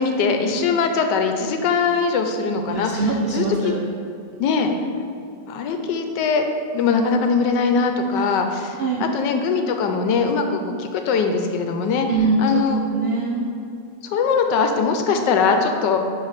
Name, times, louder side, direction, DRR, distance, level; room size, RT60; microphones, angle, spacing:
voice 1, 0.0-3.0 3.3-3.4 4.4-4.7 5.5-6.4 6.7-12.1 12.4-12.8 14.1-16.0, left 5 dB, 85° left, 5 dB, 1.3 m, -21 dB
voice 2, 2.6-3.8 8.7-9.1 12.1-13.5, right 3 dB, 85° right, -2 dB, 0.5 m, -23 dB
9.5 x 3.3 x 4.0 m, 2.5 s
omnidirectional pair, 1.9 m